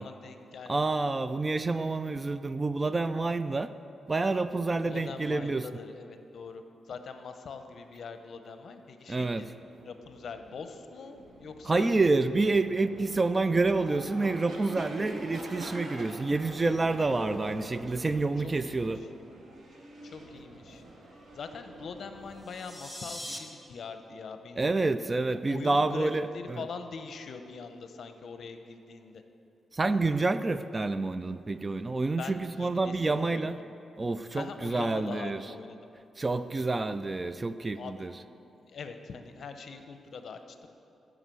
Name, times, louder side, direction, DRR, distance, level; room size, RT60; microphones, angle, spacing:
voice 1, 0.0-1.0 4.8-9.5 9.8-11.9 17.1-17.4 18.4-19.1 20.0-20.8 21.3-24.7 25.5-29.2 32.1-33.5 34.3-35.8 37.8-38.1 38.5-40.7, left 5 dB, 60° left, 7 dB, 0.7 m, -43 dB
voice 2, 0.7-3.7 4.1-5.7 9.1-9.5 11.7-19.0 24.6-26.6 29.7-33.6 34.0-35.4 36.2-38.1, right 3 dB, 25° right, 12 dB, 0.3 m, -28 dB
sound 1, 9.5-22.7, right 1 dB, 60° right, 1.6 m, -45 dB
sound 2, 22.3-23.4, left 1 dB, ahead, 1.0 m, -41 dB
11.0 x 5.1 x 7.6 m, 2.7 s
cardioid pair, 105°, 0 cm